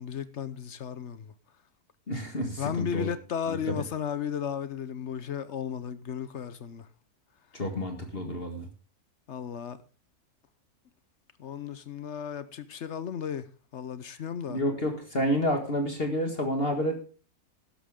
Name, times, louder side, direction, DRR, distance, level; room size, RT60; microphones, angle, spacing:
voice 1, 0.0-1.3 2.6-6.9 9.3-9.8 11.4-14.6, left 8 dB, 55° left, 1.0 m, -34 dB
voice 2, 2.1-3.1 3.5-3.7 7.5-8.7 14.5-17.0, equal, 40° left, 2.0 m, -29 dB
12.5 x 11.5 x 3.7 m
omnidirectional pair, 1.6 m